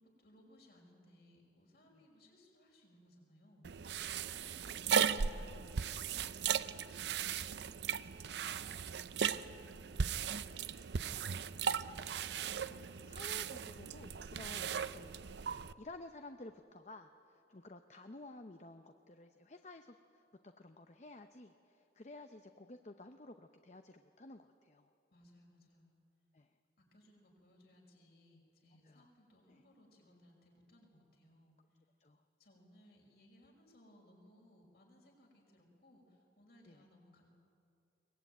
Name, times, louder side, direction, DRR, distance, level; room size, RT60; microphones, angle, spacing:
voice 1, 0.0-12.5 12.8-13.0 25.1-26.0 26.8-31.9 32.4-37.3, left 1 dB, 60° left, 0 dB, 5.6 m, -65 dB
sound 1, 3.6-15.7, right 7 dB, 70° right, 0.5 m, -37 dB
voice 2, 12.7-15.1 15.4-24.9 26.3-26.6 28.8-29.1 29.5-29.6 32.0-32.2 36.7-36.8, left 2 dB, 40° left, 7 dB, 0.7 m, -53 dB
22.5 x 20.5 x 9.3 m, 2.7 s
head